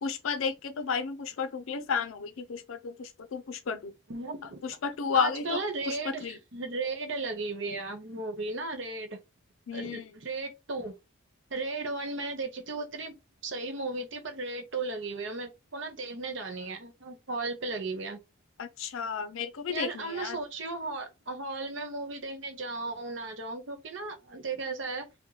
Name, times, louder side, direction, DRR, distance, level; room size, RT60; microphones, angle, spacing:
voice 1, 0.0-3.9 4.6-5.6 5.9-6.4 9.7-10.0 18.6-20.4, left 6 dB, 75° left, 0.5 m, -32 dB
voice 2, 4.1-4.6 5.1-9.2 9.7-10.9 11.5-13.2 13.4-18.2 19.7-25.1, right 3 dB, 65° right, 1.0 m, -35 dB
3.1 x 2.1 x 3.9 m
head